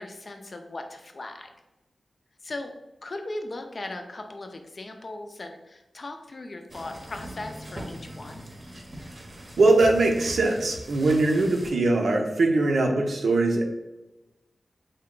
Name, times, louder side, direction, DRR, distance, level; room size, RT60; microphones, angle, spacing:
voice 1, 0.0-1.5 2.4-2.7 3.0-8.4, left 2 dB, 50° left, 5 dB, 0.4 m, -38 dB
sound 1, 6.7-11.7, right 1 dB, 35° right, 0.7 m, -41 dB
voice 2, 9.6-13.7, right 2 dB, 80° right, 2 dB, 0.6 m, -21 dB
3.5 x 2.2 x 3.7 m, 1.0 s
wide cardioid pair, 70°, 0 cm